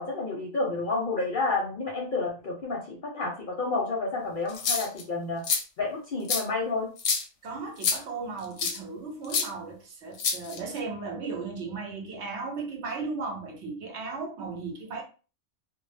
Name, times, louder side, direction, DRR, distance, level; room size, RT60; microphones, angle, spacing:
voice 1, 0.0-5.4 5.8-6.9, left 3 dB, 55° left, 0.7 m, -30 dB
sound 1, 4.5-5.0 5.4-5.6 6.3-6.4 7.0-7.2 7.8-8.0 8.6-8.8 9.3-9.4 10.2-10.8, left 5 dB, 85° left, 0.9 m, -27 dB
voice 2, 7.4-15.0, right 4 dB, 75° right, 0.9 m, -36 dB
2.1 x 2.0 x 3.2 m
omnidirectional pair, 1.2 m